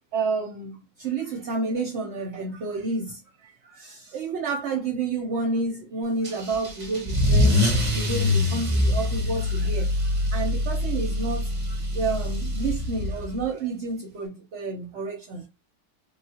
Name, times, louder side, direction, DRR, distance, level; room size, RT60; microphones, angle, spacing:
voice 1, 0.1-15.5, right 3 dB, 60° right, 0.8 m, -30 dB
Car / Engine starting / Accelerating revving vroom, 6.2-13.4, left 1 dB, 35° right, 0.5 m, -24 dB
3.7 x 2.3 x 2.7 m
omnidirectional pair, 1.6 m